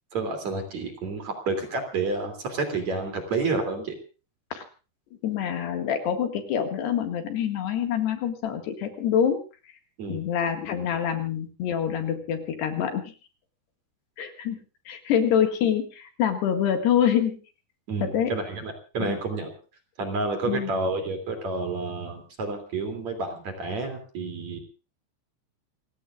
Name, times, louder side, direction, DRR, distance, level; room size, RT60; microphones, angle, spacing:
voice 1, 0.1-4.0 10.0-10.2 17.9-19.5 20.0-24.6, right 3 dB, 40° right, 5 dB, 3.9 m, -30 dB
voice 2, 5.2-9.4 10.1-13.1 14.2-14.6 14.9-17.4 18.0-18.3 19.0-19.2 20.5-20.7, left 9 dB, 70° left, 6 dB, 3.9 m, -26 dB
29.0 x 16.5 x 2.5 m, 0.35 s
omnidirectional pair, 5.3 m